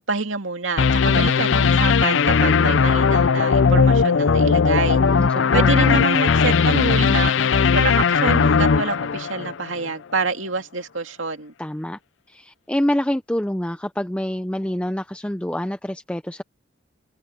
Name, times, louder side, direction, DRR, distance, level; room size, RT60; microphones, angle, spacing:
voice 1, 0.0-5.0 5.5-7.3 7.7-11.5, right 3 dB, 90° right, 2.5 m, -26 dB
sound 1, 0.8-9.8, left 5 dB, 80° left, 0.5 m, -18 dB
voice 2, 5.0-6.1 11.6-12.0 12.3-16.4, left 1 dB, 5° left, 0.5 m, -26 dB
head